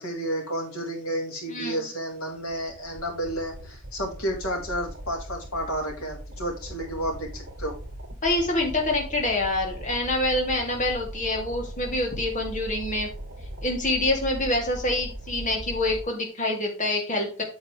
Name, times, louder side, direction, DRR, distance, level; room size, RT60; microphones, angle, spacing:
voice 1, 0.0-7.7, right 1 dB, 80° left, -1 dB, 4.1 m, -31 dB
voice 2, 1.5-1.9 8.2-13.1 13.6-17.4, left 2 dB, 35° left, 1 dB, 3.0 m, -26 dB
sound 1, 2.3-16.0, right 1 dB, 45° right, 3.7 m, -39 dB
8.5 x 7.9 x 3.4 m, 0.36 s
head